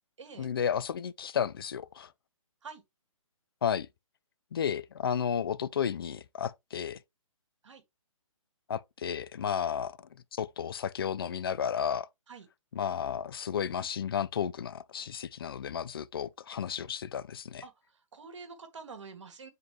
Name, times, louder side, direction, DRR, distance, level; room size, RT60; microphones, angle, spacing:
voice 1, 0.4-2.1 3.6-3.9 4.5-7.0 8.7-10.0 10.3-12.1 12.7-17.6, left 8 dB, 45° left, 0.4 m, -32 dB
voice 2, 17.6-19.5, right 5 dB, 55° right, 1.5 m, -47 dB
7.6 x 3.8 x 3.3 m
figure-of-eight pair, 130°, 18 cm